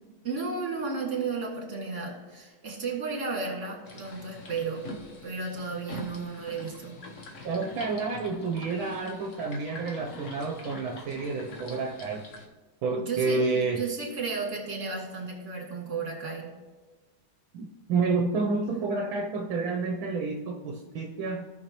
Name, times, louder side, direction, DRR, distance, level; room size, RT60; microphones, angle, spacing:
voice 1, 0.2-4.9 5.2-7.0 13.0-16.5, right 4 dB, 35° right, 0 dB, 2.2 m, -33 dB
sound 1, 3.9-12.5, left 1 dB, 45° left, 1.1 m, -44 dB
voice 2, 7.4-12.2 12.8-13.8 17.5-21.4, right 4 dB, 75° right, 1 dB, 1.6 m, -29 dB
16.5 x 5.8 x 3.0 m, 1.3 s
omnidirectional pair, 2.3 m